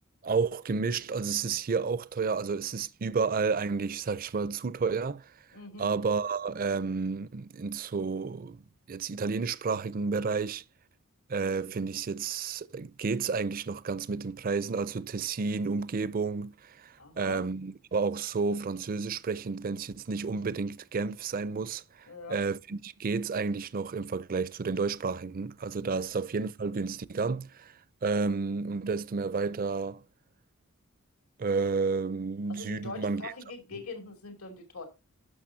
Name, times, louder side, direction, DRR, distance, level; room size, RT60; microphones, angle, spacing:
voice 1, 0.2-5.3 5.8-8.6 8.9-10.6 11.3-27.7 28.0-30.0 31.4-33.3, right 4 dB, 40° right, 0.4 m, -31 dB
voice 2, 5.5-5.9 17.0-17.4 22.1-22.4 25.8-26.0 32.5-34.8, left 3 dB, 80° left, 2.7 m, -43 dB
11.5 x 6.7 x 2.7 m
head